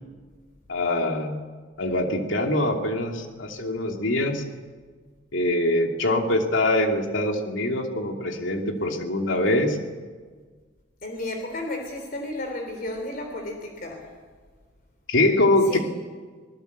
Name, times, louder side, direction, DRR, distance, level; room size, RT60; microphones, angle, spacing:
voice 1, 0.7-1.4 1.8-4.4 5.3-9.8 15.1-15.8, left 1 dB, 80° left, 3 dB, 2.7 m, -23 dB
voice 2, 11.0-14.1 15.7-15.8, left 1 dB, 50° left, 3 dB, 3.4 m, -33 dB
25.5 x 19.5 x 8.2 m, 1.5 s
head